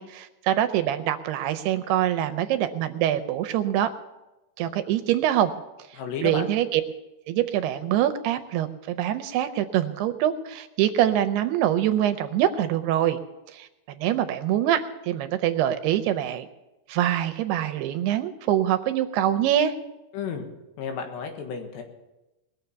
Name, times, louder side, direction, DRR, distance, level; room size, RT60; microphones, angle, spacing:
voice 1, 0.0-3.9 4.6-5.5 6.2-6.8 7.3-13.2 13.5-13.7 14.0-16.5 16.9-19.7, right 11 dB, 80° right, 9 dB, 2.6 m, -24 dB
voice 2, 6.0-6.5 20.1-20.5 20.8-21.8, left 6 dB, 80° left, 4 dB, 3.8 m, -32 dB
21.0 x 7.2 x 6.9 m, 1.0 s
omnidirectional pair, 4.9 m